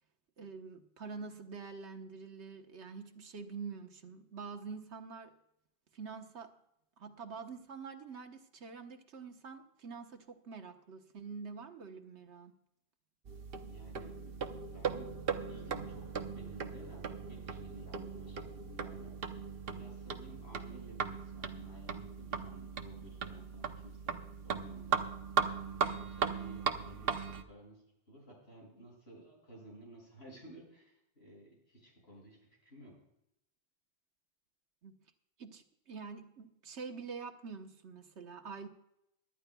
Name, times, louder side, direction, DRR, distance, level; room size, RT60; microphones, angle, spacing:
voice 1, 0.4-5.3 5.9-6.5 7.0-12.5 34.8-35.0 35.4-38.7, right 5 dB, 80° right, 5 dB, 1.4 m, -46 dB
sound 1, 13.2-27.4, right 6 dB, 60° right, 1.0 m, -38 dB
voice 2, 13.7-15.1 15.5-19.4 19.7-25.0 25.8-27.8 28.1-32.4 32.6-32.9, right 1 dB, 65° left, -3 dB, 6.5 m, -54 dB
23.5 x 12.0 x 2.3 m, 0.80 s
omnidirectional pair, 1.2 m